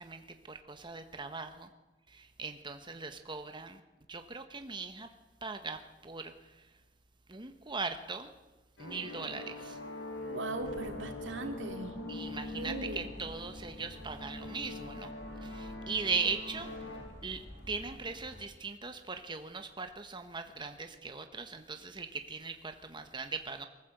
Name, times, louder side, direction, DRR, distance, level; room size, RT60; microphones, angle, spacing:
voice 1, 0.0-1.7 2.1-3.8 4.1-5.1 5.4-6.3 7.3-8.3 8.8-9.8 12.1-15.1 15.4-16.7 17.2-17.4 17.7-23.7, right 4 dB, 25° right, 7 dB, 1.1 m, -39 dB
sound 1, 8.8-17.0, left 2 dB, 85° left, 6.2 m, -43 dB
voice 2, 10.3-12.0 12.5-13.1, right 2 dB, 75° right, 5 dB, 2.6 m, -39 dB
sound 2, 10.6-18.4, equal, 65° left, 6.7 m, -51 dB
23.0 x 14.5 x 7.9 m, 1.2 s
head